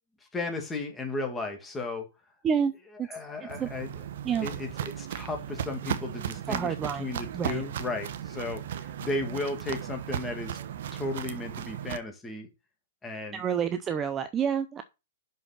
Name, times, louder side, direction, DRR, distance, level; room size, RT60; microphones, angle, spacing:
voice 1, 0.3-2.1 3.1-3.9 4.4-6.7 7.0-10.6 10.9-12.5 13.0-13.4, left 2 dB, 10° left, 2.2 m, -34 dB
Walk footsteps, 3.5-12.0, right 9 dB, 60° right, 1.0 m, -36 dB
voice 2, 6.5-7.1 7.3-7.6 13.3-14.8, right 7 dB, 20° right, 0.6 m, -28 dB
6.3 x 5.5 x 5.8 m
hypercardioid pair, 145°, 0 cm